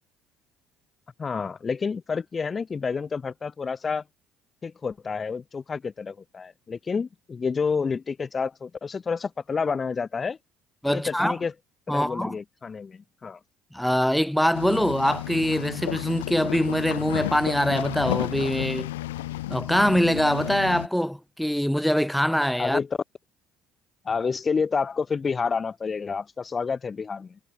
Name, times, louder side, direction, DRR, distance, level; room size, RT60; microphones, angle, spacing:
voice 1, 1.2-4.0 4.6-10.4 10.9-11.5 11.9-13.4 22.6-22.9 24.0-27.4, left 5 dB, 35° left, 3.8 m, -29 dB
voice 2, 10.8-11.3 11.9-12.3 13.7-18.9 19.5-22.8, equal, ahead, 2.4 m, -23 dB
sound 1, 14.5-20.9, left 16 dB, 85° left, 4.4 m, -32 dB
hypercardioid pair, 60°, 0 cm